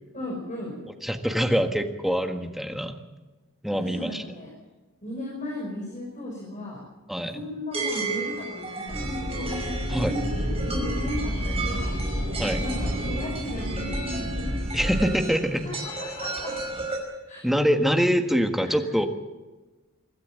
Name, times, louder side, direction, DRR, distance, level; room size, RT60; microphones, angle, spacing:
voice 1, 0.1-0.7 3.8-4.5 5.0-6.8 7.3-9.6 10.6-11.9 12.6-14.6 15.6-16.5 17.3-17.4 18.6-18.8, left 1 dB, 35° left, -2 dB, 5.5 m, -36 dB
voice 2, 1.0-3.0 3.6-4.2 7.1-7.4 9.9-10.2 12.4-12.6 14.7-15.7 17.4-19.1, equal, ahead, 5 dB, 1.6 m, -24 dB
sound 1, 7.7-17.0, right 3 dB, 30° right, 5.6 m, -34 dB
sound 2, 8.9-15.2, equal, 85° right, 7.8 m, -29 dB
24.5 x 13.0 x 8.7 m, 1.2 s
head